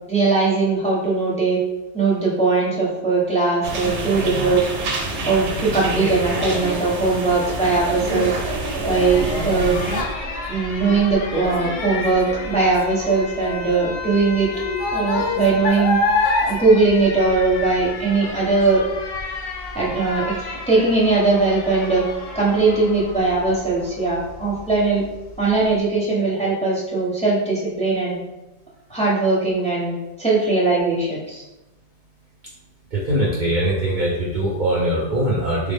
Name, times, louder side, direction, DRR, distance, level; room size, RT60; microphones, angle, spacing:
voice 1, 0.1-1.6 1.9-4.6 5.3-8.4 8.9-9.8 10.5-14.5 14.9-16.0 16.5-18.8 19.7-22.0 22.3-25.0 25.4-28.2 28.9-31.4, right 3 dB, 5° left, -6 dB, 0.7 m, -20 dB
sound 1, 3.6-10.0, right 2 dB, 80° right, 1.0 m, -27 dB
Child speech kid speaking, 5.8-17.9 18.2-18.6 19.1-19.2, left 2 dB, 90° left, 0.9 m, -27 dB
Alarm, 8.6-25.8, left 3 dB, 65° left, 0.8 m, -34 dB
voice 2, 32.9-35.7, right 1 dB, 55° right, -5 dB, 0.6 m, -22 dB
3.4 x 2.0 x 3.4 m, 1.0 s
omnidirectional pair, 1.2 m